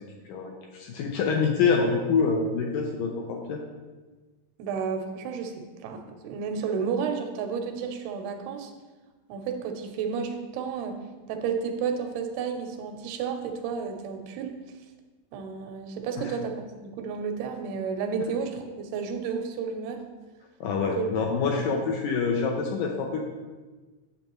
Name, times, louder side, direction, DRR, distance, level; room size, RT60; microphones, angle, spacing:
voice 1, 0.3-3.6 16.2-16.4 20.6-23.2, left 5 dB, 80° left, 1 dB, 2.0 m, -26 dB
voice 2, 4.6-8.7 9.3-11.0 11.3-14.5 15.3-20.0 21.0-21.1 21.3-21.6, right 6 dB, 90° right, 5 dB, 2.7 m, -32 dB
8.6 x 7.4 x 3.0 m, 1.3 s
omnidirectional pair, 4.4 m